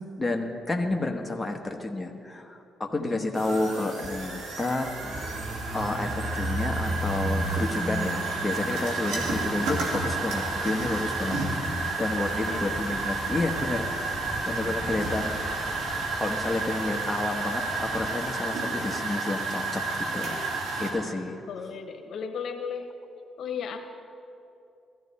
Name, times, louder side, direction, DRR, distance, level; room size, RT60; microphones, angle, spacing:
voice 1, 0.2-5.3 5.7-11.4 12.0-13.9 14.5-15.4 16.2-20.4 20.8-21.4, left 2 dB, 15° left, 2 dB, 1.2 m, -30 dB
voice 2, 3.0-3.3 9.3-9.5 12.4-12.8 14.9-15.2 21.5-22.9 23.4-23.8, left 6 dB, 70° left, 5 dB, 1.1 m, -36 dB
sound 1, 3.4-20.9, right 3 dB, 90° right, 2.2 m, -31 dB
sound 2, 5.0-18.1, right 1 dB, 10° right, 1.3 m, -38 dB
16.0 x 13.5 x 4.2 m, 2.6 s
cardioid pair, 90°, 0 cm